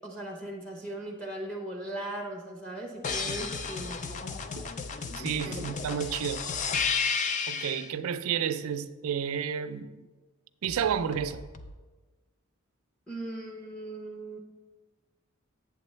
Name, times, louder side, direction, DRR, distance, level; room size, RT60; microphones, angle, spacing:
voice 1, 0.0-4.2 5.5-5.7 13.1-14.4, right 1 dB, 5° left, 0.7 m, -38 dB
sound 1, 3.0-7.9 10.6-11.7, left 5 dB, 35° left, 0.4 m, -33 dB
voice 2, 5.1-6.5 7.5-10.1 10.6-11.4, right 8 dB, 85° right, 0.4 m, -31 dB
8.2 x 7.6 x 3.2 m
head